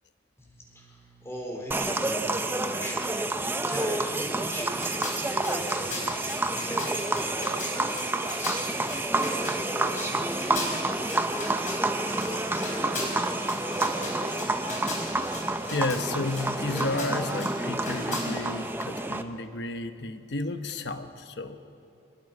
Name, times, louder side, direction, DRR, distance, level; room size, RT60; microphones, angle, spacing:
voice 1, 0.4-8.6 9.1-11.4 11.9-13.3, equal, 15° left, -1 dB, 4.0 m, -39 dB
sound 1, 1.7-19.2, right 2 dB, 10° right, 0.6 m, -29 dB
sound 2, 4.7-18.2, left 3 dB, 40° left, 4.7 m, -39 dB
voice 2, 15.7-21.6, left 2 dB, 65° left, 8 dB, 1.1 m, -32 dB
24.5 x 21.5 x 5.5 m, 2.6 s
head